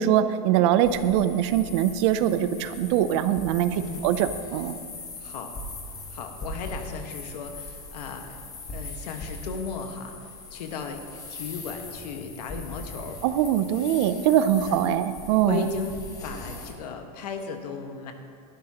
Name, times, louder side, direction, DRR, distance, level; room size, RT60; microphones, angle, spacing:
voice 1, 0.0-4.8 13.2-15.7, right 10 dB, 45° right, 12 dB, 0.5 m, -23 dB
sound 1, 0.8-16.7, left 2 dB, 15° left, 1.2 m, -40 dB
voice 2, 5.2-5.5 6.1-8.4 8.7-13.2 14.6-14.8 15.4-15.9 16.2-18.1, left 5 dB, 75° left, 5 dB, 1.5 m, -36 dB
17.5 x 12.5 x 2.9 m, 2.2 s
supercardioid pair, 170°, 20 cm